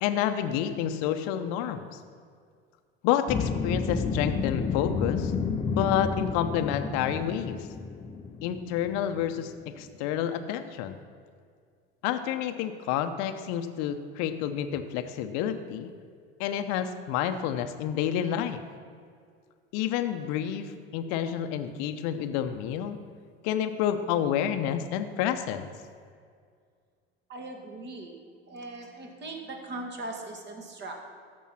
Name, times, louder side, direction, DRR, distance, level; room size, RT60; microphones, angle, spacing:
voice 1, 0.0-1.9 3.0-5.3 5.6-7.7 8.4-11.0 12.0-15.9 16.4-18.6 19.7-23.0 23.4-25.7, left 10 dB, 55° left, 9 dB, 0.8 m, -29 dB
sound 1, 3.3-9.5, left 5 dB, 20° left, 0.6 m, -31 dB
voice 2, 27.3-28.2 28.5-31.0, right 2 dB, 35° right, 2 dB, 2.1 m, -39 dB
14.0 x 5.4 x 5.8 m, 2.1 s
hypercardioid pair, 80°, 31 cm